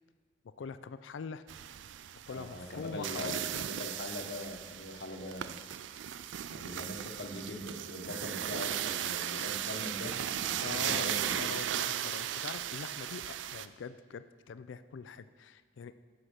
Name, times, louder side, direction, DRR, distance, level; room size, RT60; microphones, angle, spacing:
voice 1, 0.6-1.4 2.3-3.5 10.6-16.0, left 6 dB, 90° left, 13 dB, 0.4 m, -43 dB
sound 1, 1.5-13.7, right 10 dB, 80° right, 0.4 m, -36 dB
voice 2, 2.3-5.6 6.5-11.4, left 1 dB, 65° left, 4 dB, 1.0 m, -42 dB
10.0 x 5.8 x 6.3 m, 1.5 s
head